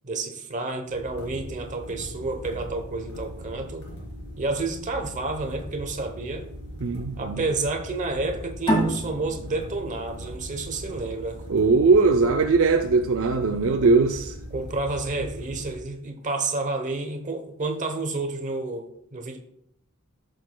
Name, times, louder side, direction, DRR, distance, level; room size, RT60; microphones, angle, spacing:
voice 1, 0.0-3.9 4.4-6.5 7.2-11.4 13.5-14.0 14.5-19.4, right 3 dB, 35° right, 5 dB, 1.0 m, -30 dB
sound 1, 0.9-15.8, equal, 70° left, 3.8 m, -39 dB
voice 2, 6.8-7.5 11.5-14.4, right 4 dB, 60° right, 5 dB, 0.5 m, -20 dB
sound 2, 8.7-11.9, right 1 dB, 25° left, 2.0 m, -28 dB
14.0 x 6.4 x 2.3 m, 0.72 s
head